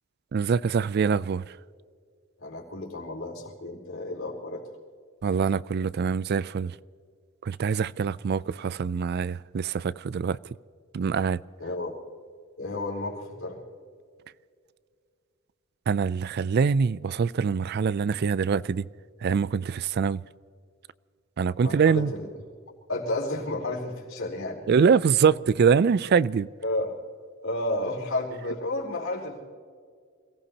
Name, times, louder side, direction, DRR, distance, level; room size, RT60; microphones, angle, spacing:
voice 1, 0.3-1.4 5.2-6.7 7.4-10.4 10.9-11.4 15.9-18.9 19.2-20.2 21.4-22.1 24.7-26.5, right 6 dB, 50° right, 0.4 m, -24 dB
voice 2, 2.4-4.6 11.6-12.0 12.6-13.6 21.6-22.3 22.9-24.7 25.2-25.3 26.6-26.9 27.4-29.4, left 2 dB, 70° left, 4.7 m, -32 dB
28.0 x 18.0 x 2.8 m
head